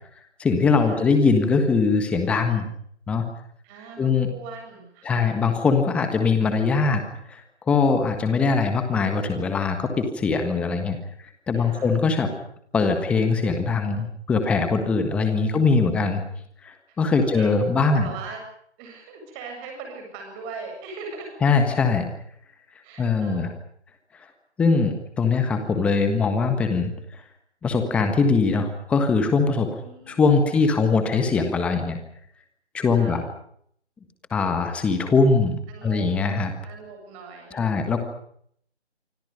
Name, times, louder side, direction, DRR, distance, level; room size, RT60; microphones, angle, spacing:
voice 1, 0.4-2.6 3.1-3.3 4.0-4.3 5.0-7.0 7.3-7.4 7.7-11.0 11.5-12.3 12.7-16.2 16.6-18.1 21.4-22.1 23.0-23.5 24.6-26.9 27.6-29.7 30.1-32.0 32.7-33.2 34.3-35.6 35.8-36.5 37.5-38.0, left 4 dB, 5° left, 6 dB, 1.5 m, -21 dB
voice 2, 3.6-5.3 8.5-8.9 11.5-12.0 15.2-16.1 16.9-17.0 17.2-17.6 17.9-18.4 18.8-21.3 22.8-23.5 25.5-25.6 29.8-30.7 32.8-33.3 35.7-36.1 36.6-37.6, right 4 dB, 15° right, 3 dB, 7.6 m, -41 dB
27.0 x 25.5 x 5.1 m, 0.66 s
figure-of-eight pair, 160°, 34 cm